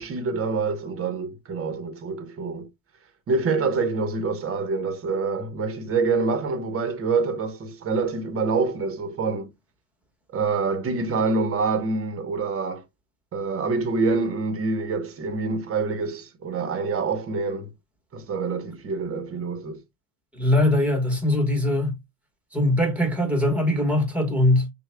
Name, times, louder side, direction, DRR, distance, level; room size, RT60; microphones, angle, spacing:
voice 1, 0.0-2.7 3.3-9.5 10.3-12.8 13.3-17.7 18.1-19.8, right 4 dB, 30° right, 0.9 m, -26 dB
voice 2, 20.3-22.0 22.5-24.7, left 1 dB, 5° right, 1.2 m, -21 dB
6.3 x 2.4 x 2.2 m
cardioid pair, 135°, 44 cm